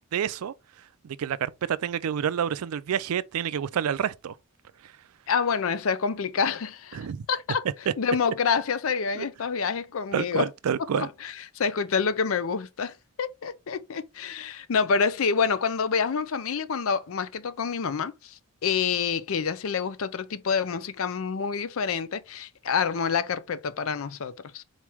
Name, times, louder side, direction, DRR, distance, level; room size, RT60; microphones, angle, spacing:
voice 1, 0.1-0.5 1.0-4.3 6.9-7.3 7.9-8.0 9.2-9.3 10.1-11.1, right 8 dB, 90° right, 0.4 m, -28 dB
voice 2, 5.3-7.0 7.3-7.6 8.0-10.5 11.0-24.6, left 6 dB, 70° left, 0.5 m, -27 dB
4.3 x 3.1 x 3.4 m
head